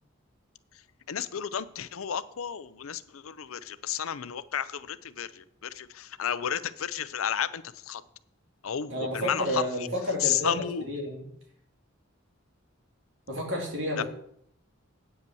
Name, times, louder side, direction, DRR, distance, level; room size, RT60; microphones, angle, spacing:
voice 1, 1.1-8.0 8.6-9.9 10.2-11.0 14.0-14.1, left 9 dB, 90° left, 16 dB, 0.5 m, -32 dB
voice 2, 8.9-11.3 13.3-14.0, equal, 60° right, 0 dB, 3.0 m, -31 dB
9.2 x 5.5 x 6.9 m, 0.67 s
head